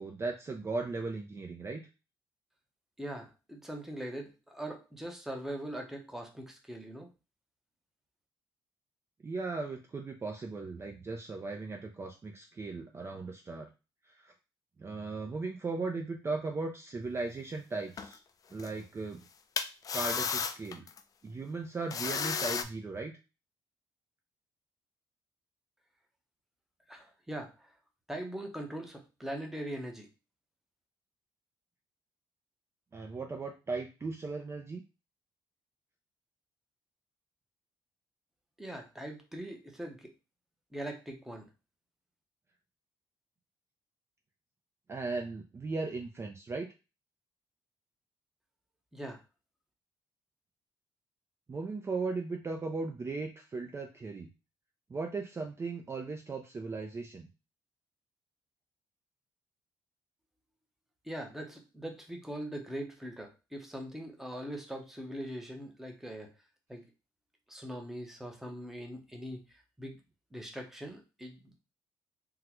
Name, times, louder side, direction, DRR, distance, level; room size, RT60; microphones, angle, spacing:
voice 1, 0.0-1.8 9.2-13.7 14.2-14.3 14.8-18.2 18.5-19.2 19.9-20.8 21.2-23.1 32.9-34.8 44.9-46.7 51.5-54.3 54.9-57.3, right 3 dB, 30° right, 2 dB, 0.5 m, -37 dB
voice 2, 3.0-7.1 26.9-27.5 28.1-30.1 38.6-40.1 40.7-41.4 48.9-49.2 61.0-66.3 66.7-66.8 67.5-69.4 69.8-70.0 70.3-71.6, right 1 dB, 5° right, 2 dB, 0.8 m, -41 dB
sound 1, 18.0-18.1 18.6-18.7 19.6-21.0 21.9-22.6, left 6 dB, 45° left, 0.4 m, -33 dB
3.7 x 2.2 x 3.0 m, 0.29 s
cardioid pair, 90°, 9 cm